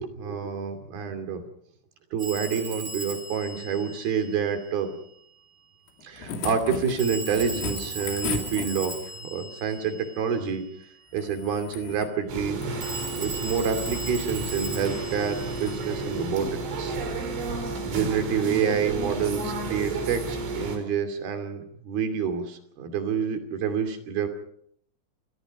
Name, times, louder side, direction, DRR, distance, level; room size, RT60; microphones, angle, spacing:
voice 1, 0.0-1.4 2.1-4.9 6.0-10.6 11.1-12.6 13.2-16.5 16.8-17.0 17.8-24.3, right 7 dB, 55° right, 7 dB, 4.3 m, -28 dB
Telephone, 2.2-4.8 7.0-10.6 12.8-16.3, right 2 dB, 40° right, 6.2 m, -38 dB
sound 1, 5.9-9.2 11.1-12.2 12.5-13.1 13.6-14.1 14.7-15.0 15.5-15.8 17.2-17.3, left 5 dB, 85° left, 5.4 m, -37 dB
sound 2, 12.3-20.8, right 3 dB, 70° right, 6.3 m, -32 dB
29.5 x 21.0 x 5.4 m, 0.68 s
omnidirectional pair, 5.6 m